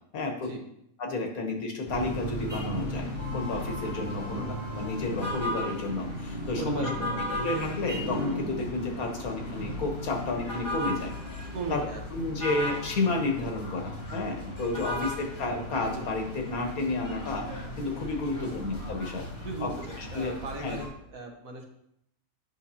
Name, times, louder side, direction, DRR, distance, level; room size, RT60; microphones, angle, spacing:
voice 1, 0.1-0.5 1.0-4.5 4.7-6.8 7.4-11.8 12.1-19.7 20.1-20.3 20.6-20.8, left 3 dB, 75° left, 3 dB, 1.6 m, -31 dB
sound 1, 1.9-20.9, left 1 dB, 35° left, 2.6 m, -35 dB
voice 2, 6.6-7.4 11.5-12.0 14.9-15.1 18.3-18.6 19.4-21.7, right 2 dB, 70° right, 2 dB, 1.5 m, -37 dB
9.1 x 6.0 x 2.8 m, 0.75 s
omnidirectional pair, 1.5 m